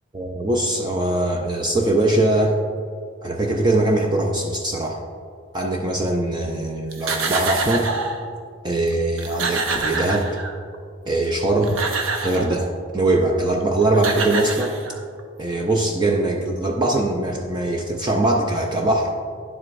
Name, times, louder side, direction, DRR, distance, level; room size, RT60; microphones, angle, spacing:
voice 1, 0.1-2.6 3.2-5.0 5.5-7.9 8.6-10.3 11.1-11.8 12.2-14.8 15.4-19.1, right 2 dB, 20° right, 1 dB, 0.5 m, -21 dB
sound 1, 6.9-8.2 8.9-9.0 9.2-10.7 11.4-12.6 13.6-13.7 13.9-15.2, right 4 dB, 85° right, 0.8 m, -26 dB
10.0 x 7.7 x 2.5 m, 2.2 s
head